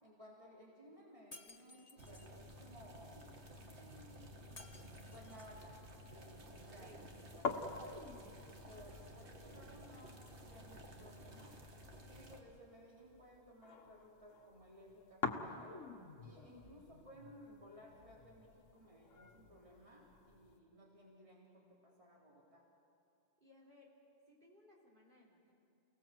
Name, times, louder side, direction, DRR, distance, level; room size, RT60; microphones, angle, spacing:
voice 1, 0.0-4.3 5.1-5.8 6.1-11.6 11.9-15.8 16.2-22.6, equal, 25° right, -4 dB, 3.8 m, -59 dB
Shatter, 1.3-2.3 4.6-5.6, left 3 dB, 30° left, 1.4 m, -57 dB
sound 1, 2.0-12.4, equal, 60° right, 2.3 m, -54 dB
sound 2, 4.8-20.6, left 4 dB, 85° left, 1.7 m, -48 dB
voice 2, 6.6-7.1 7.4-7.5 7.9-8.6 23.4-24.0 24.3-25.5, left 1 dB, 40° right, -3 dB, 4.2 m, -65 dB
29.5 x 18.5 x 7.7 m, 2.8 s
omnidirectional pair, 1.3 m